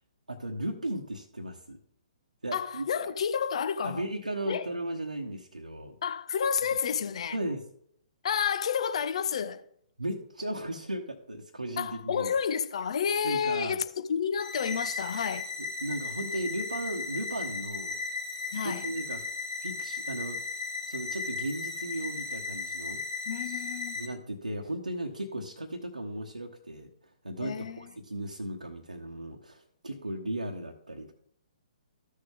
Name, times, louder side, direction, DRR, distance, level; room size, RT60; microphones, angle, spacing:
voice 1, 0.3-1.8 2.4-2.9 3.8-6.0 7.3-7.6 10.0-12.3 13.2-13.8 15.8-18.0 18.6-19.3 19.6-20.4 20.9-23.0 23.9-26.9 27.2-31.1, right 1 dB, 80° right, 1.2 m, -36 dB
voice 2, 2.5-4.0 4.5-4.7 6.0-7.4 8.2-9.6 11.8-15.5 18.5-18.9 23.3-24.0 27.4-27.9, left 7 dB, 50° left, 0.8 m, -30 dB
sound 1, 14.4-24.1, left 4 dB, 85° left, 2.6 m, -36 dB
14.0 x 6.5 x 3.6 m
figure-of-eight pair, 125°, 4 cm